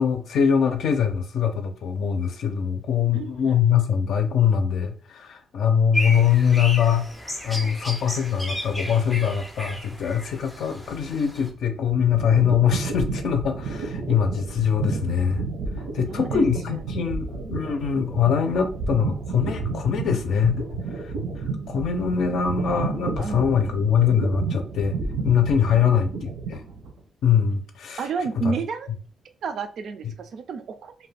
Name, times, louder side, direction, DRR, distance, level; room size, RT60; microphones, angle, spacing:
voice 1, 0.0-7.1 7.4-15.4 15.9-21.1 21.7-25.0 25.2-26.6 27.2-28.1 28.4-28.5, left 7 dB, 65° left, 6 dB, 0.5 m, -23 dB
voice 2, 3.1-3.6 16.1-17.3 22.7-22.9 23.2-23.4 25.7-26.0 28.0-28.9 29.4-30.9, right 5 dB, 60° right, 8 dB, 0.3 m, -32 dB
sound 1, 5.9-11.5, left 1 dB, 5° left, 0.4 m, -34 dB
sound 2, 11.5-27.0, right 4 dB, 85° right, 0.7 m, -31 dB
2.6 x 2.2 x 3.2 m, 0.42 s
cardioid pair, 145°, 0 cm